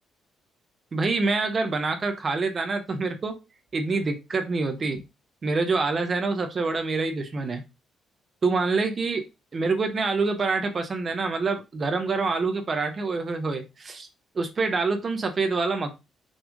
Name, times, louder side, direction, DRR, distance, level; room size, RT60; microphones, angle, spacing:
voice 1, 0.9-3.3 3.7-5.0 5.4-7.6 8.4-9.2 9.5-14.1 14.3-15.9, right 3 dB, 35° right, 6 dB, 1.0 m, -26 dB
6.3 x 3.4 x 5.0 m, 0.25 s
cardioid pair, 125°, 0 cm